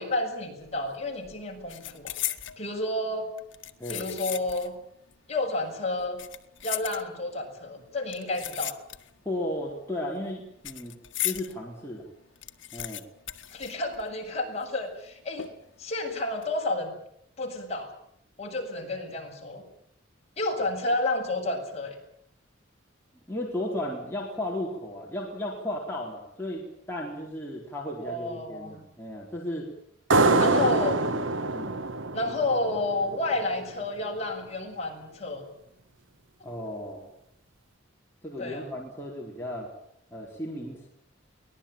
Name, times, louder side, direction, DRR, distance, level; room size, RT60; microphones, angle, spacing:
voice 1, 0.0-2.1 2.6-3.3 3.9-4.8 5.3-6.2 6.6-8.7 13.5-15.5 15.8-17.0 17.4-17.9 18.4-19.6 20.4-22.0 28.0-28.8 30.4-31.0 32.1-35.5 38.4-38.7, left 2 dB, 35° left, 1 dB, 6.6 m, -30 dB
sound 1, 0.6-0.9 1.2-2.6 3.4-4.8 5.1-5.2 6.0-7.4 8.1-9.3 9.6-11.5 11.9-12.0 12.2-14.3 14.6-14.7 15.4-15.8 16.2-16.4, left 13 dB, 70° left, 1.7 m, -36 dB
voice 2, 9.2-11.0 11.2-12.1 12.7-13.0 23.3-29.7 30.2-30.6 31.0-31.3 31.5-31.8 36.4-37.1 38.2-39.7 40.1-40.9, left 1 dB, 10° left, -3 dB, 4.4 m, -35 dB
sound 2, 30.1-33.4, right 3 dB, 75° right, 1.3 m, -25 dB
24.0 x 19.5 x 9.0 m, 0.71 s
head